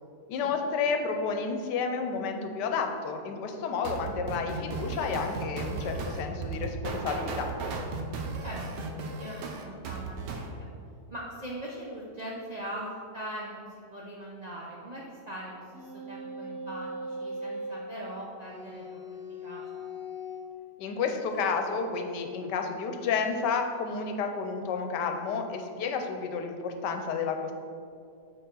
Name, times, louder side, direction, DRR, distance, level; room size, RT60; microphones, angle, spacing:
voice 1, 0.3-7.5 20.8-27.5, left 5 dB, 90° left, 5 dB, 1.2 m, -31 dB
sound 1, 3.8-10.5, right 4 dB, 85° right, 1.3 m, -35 dB
voice 2, 8.4-8.9 9.2-10.7 11.1-19.8, right 1 dB, 65° right, -4 dB, 0.4 m, -41 dB
sound 2, 15.7-17.8 18.5-20.5 21.2-21.4, equal, 35° left, 1.7 m, -39 dB
6.6 x 4.2 x 3.8 m, 2.4 s
omnidirectional pair, 1.8 m